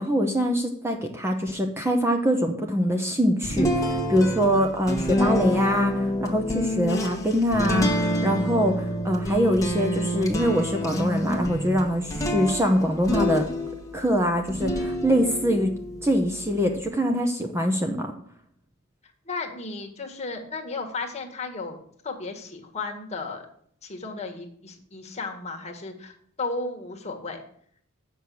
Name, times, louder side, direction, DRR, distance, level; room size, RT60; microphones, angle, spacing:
voice 1, 0.0-8.0 8.2-13.5 13.9-15.7 16.0-18.1, equal, 10° right, 4 dB, 0.8 m, -24 dB
sound 1, 3.4-14.0 14.5-16.8, equal, 15° left, 1.4 m, -28 dB
voice 2, 19.2-21.8 22.0-23.5 23.8-27.4, left 3 dB, 30° left, 2 dB, 1.6 m, -34 dB
7.9 x 6.3 x 7.0 m, 0.62 s
head